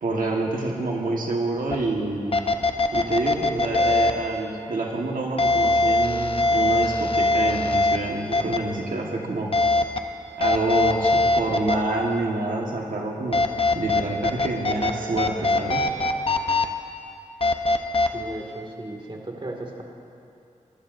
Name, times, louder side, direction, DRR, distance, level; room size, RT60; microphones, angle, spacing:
voice 1, 0.0-2.5 2.9-9.5 10.4-13.4 13.7-15.8, right 2 dB, 85° right, -1 dB, 1.4 m, -27 dB
sound 1, 1.7-1.8 2.3-4.1 5.4-8.0 8.3-8.6 9.5-10.0 10.4-11.8 13.3-14.9 15.2-16.7 17.4-18.1, left 2 dB, 45° left, 0.8 m, -21 dB
voice 2, 18.1-19.8, right 1 dB, 35° right, 0 dB, 2.1 m, -35 dB
23.0 x 15.0 x 2.6 m, 2.6 s
wide cardioid pair, 70°, 14 cm